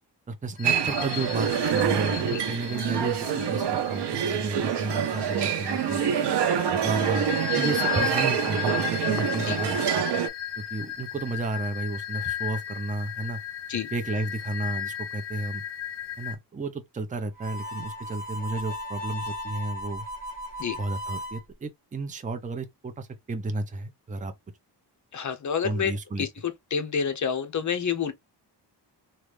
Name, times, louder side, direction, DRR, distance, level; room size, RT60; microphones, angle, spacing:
voice 1, 0.3-6.0 6.7-10.0 10.6-13.4 13.9-15.6 16.2-20.1 20.8-24.3 25.6-26.3, right 2 dB, 20° right, 0.5 m, -32 dB
sound 1, 0.6-16.4, left 11 dB, 80° left, 0.7 m, -35 dB
sound 2, 0.6-10.3, right 8 dB, 75° right, 0.7 m, -26 dB
Harmonica, 17.3-21.4, equal, 20° left, 1.4 m, -36 dB
voice 2, 25.1-28.1, left 7 dB, 45° left, 0.7 m, -29 dB
3.1 x 2.5 x 3.2 m
wide cardioid pair, 155°, 42 cm